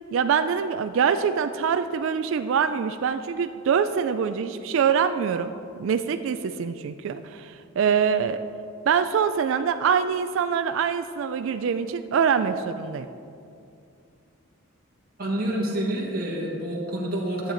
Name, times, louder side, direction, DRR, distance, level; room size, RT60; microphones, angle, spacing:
voice 1, 0.1-5.5 5.8-8.4 8.9-13.1, right 7 dB, 65° right, 9 dB, 0.3 m, -24 dB
voice 2, 15.2-17.5, right 1 dB, 45° right, -3 dB, 1.6 m, -28 dB
11.5 x 8.0 x 3.9 m, 2.5 s
head